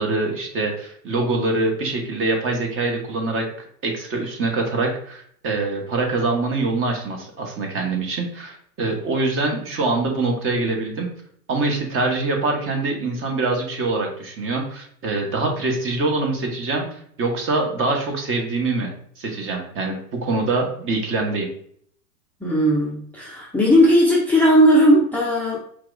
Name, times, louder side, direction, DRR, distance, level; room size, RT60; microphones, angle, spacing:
voice 1, 0.0-3.4 3.8-11.1 11.5-18.9 19.2-21.5, right 3 dB, 30° right, 2 dB, 1.1 m, -24 dB
voice 2, 22.4-25.6, equal, 5° left, -5 dB, 0.6 m, -16 dB
4.5 x 2.4 x 3.9 m, 0.62 s
hypercardioid pair, 105°, 45 cm